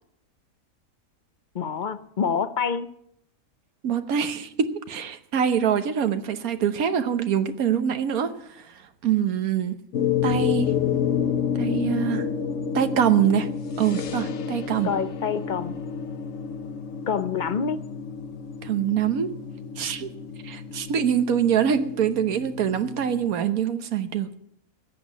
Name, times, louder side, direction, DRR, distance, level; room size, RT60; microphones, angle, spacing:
voice 1, 1.5-2.9 14.8-15.8 17.1-17.8, left 6 dB, 45° left, 13 dB, 0.7 m, -27 dB
voice 2, 3.8-8.7 9.0-9.7 10.2-10.7 11.6-12.3 12.7-13.5 13.8-14.9 18.6-19.3 19.8-20.1 20.4-24.4, right 8 dB, 85° right, 10 dB, 1.5 m, -24 dB
sound 1, 9.9-23.3, left 7 dB, 65° left, 1.3 m, -29 dB
14.0 x 8.2 x 9.5 m, 0.72 s
omnidirectional pair, 1.5 m